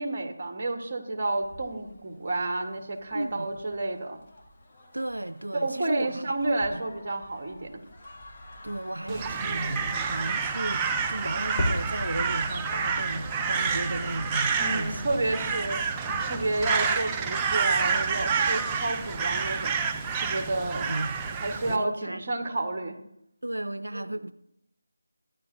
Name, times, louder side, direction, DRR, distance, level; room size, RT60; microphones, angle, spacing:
voice 1, 0.0-4.2 5.5-7.7 9.1-9.8 14.6-15.8 16.3-19.8 20.2-20.9 21.4-23.0 23.9-24.0, right 2 dB, 35° right, 1.2 m, -30 dB
sound 1, 1.3-16.8, left 1 dB, 30° left, 1.4 m, -41 dB
voice 2, 3.1-3.5 4.9-6.2 6.7-6.8 8.6-15.1 20.7-21.2 21.7-22.2 23.4-24.3, right 1 dB, 85° right, 0.4 m, -34 dB
Crow, 9.1-21.8, right 5 dB, 15° right, 0.4 m, -29 dB
13.5 x 9.6 x 2.6 m
figure-of-eight pair, 165°, 0 cm